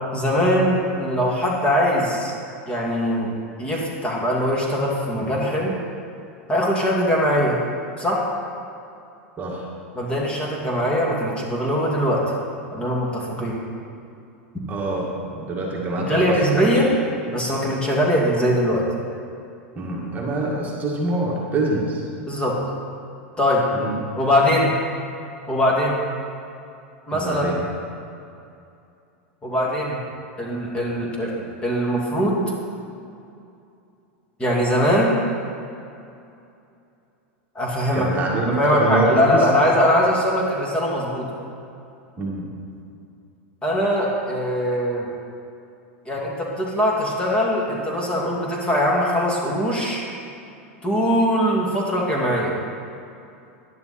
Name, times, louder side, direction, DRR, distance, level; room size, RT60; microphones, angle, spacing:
voice 1, 0.1-2.3 2.7-3.3 3.6-5.7 6.5-7.6 8.0-8.2 9.9-12.2 12.7-13.6 16.0-16.9 17.3-18.8 22.3-22.6 23.4-23.6 24.2-24.7 25.5-26.0 27.1-27.5 29.4-30.0 30.4-32.4 34.4-35.1 37.5-38.1 38.5-41.3 43.6-45.1 46.1-50.0 50.8-52.5, equal, 15° left, -3 dB, 2.4 m, -21 dB
voice 2, 14.7-16.7 19.8-22.0 23.7-24.0 27.1-27.6 37.9-39.5 42.2-42.5, right 2 dB, 25° right, -3 dB, 2.0 m, -25 dB
11.0 x 10.5 x 4.3 m, 2.6 s
hypercardioid pair, 120°, 7 cm